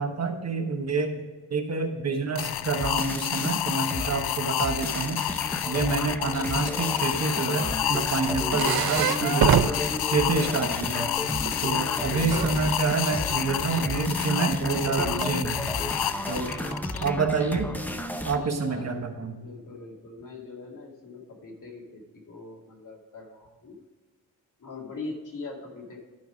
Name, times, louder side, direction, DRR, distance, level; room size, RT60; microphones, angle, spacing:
voice 1, 0.0-5.2 5.7-9.6 10.1-11.1 11.6-15.6 16.3-16.5 17.0-17.7 18.2-19.4, right 4 dB, 45° right, 5 dB, 1.2 m, -28 dB
sound 1, 2.4-17.1, left 12 dB, 75° left, 0.5 m, -30 dB
sound 2, 2.8-4.1 4.6-18.4, left 1 dB, 5° left, 0.7 m, -33 dB
sound 3, 7.2-11.0 11.3-12.5 13.8-13.9 15.0-15.3 15.9-16.8, right 9 dB, 70° right, 0.6 m, -27 dB
voice 2, 11.7-12.5 16.3-16.9 18.3-18.9 19.4-23.8 24.6-26.0, left 3 dB, 55° left, -1 dB, 2.4 m, -42 dB
12.0 x 5.6 x 5.0 m, 1.3 s
wide cardioid pair, 125°, 37 cm